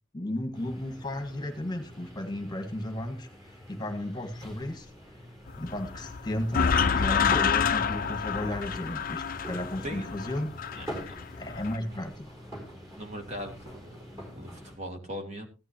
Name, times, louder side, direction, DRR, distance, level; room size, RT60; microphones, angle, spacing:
voice 1, 0.1-4.9 5.6-10.5 11.4-12.3, left 1 dB, 20° left, 5 dB, 1.6 m, -34 dB
sound 1, 0.5-14.8, equal, 20° right, 4.3 m, -45 dB
sound 2, 5.5-11.8, left 6 dB, 45° left, 0.6 m, -28 dB
voice 2, 13.0-13.9 14.2-15.5, equal, 35° right, 3 dB, 2.4 m, -39 dB
16.0 x 11.5 x 2.9 m, 0.29 s
head